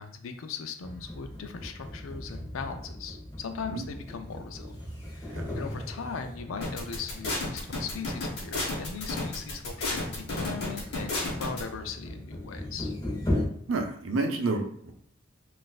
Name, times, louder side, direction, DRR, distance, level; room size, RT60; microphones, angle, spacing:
voice 1, 0.0-4.8 5.1-12.9, left 5 dB, 80° left, 7 dB, 0.4 m, -39 dB
sound 1, 0.8-13.4, left 1 dB, 20° left, 0.9 m, -38 dB
sound 2, 6.6-11.6, left 2 dB, 55° left, 1.0 m, -31 dB
voice 2, 13.7-14.9, right 3 dB, 70° right, 3 dB, 0.6 m, -29 dB
4.0 x 2.5 x 2.4 m, 0.66 s
head